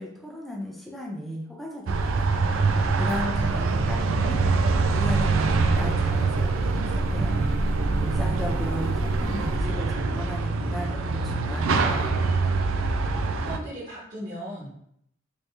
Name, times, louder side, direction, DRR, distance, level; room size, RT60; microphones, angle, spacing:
voice 1, 0.0-2.4 3.0-7.5 8.0-12.2, left 1 dB, ahead, -2 dB, 0.5 m, -35 dB
sound 1, 1.9-9.6, equal, 55° right, 0.9 m, -33 dB
sound 2, 1.9-13.6, right 4 dB, 80° right, 0.4 m, -24 dB
voice 2, 3.1-3.8 4.2-4.4 13.4-14.7, right 1 dB, 35° right, -13 dB, 1.2 m, -38 dB
3.5 x 3.0 x 2.7 m, 0.71 s
head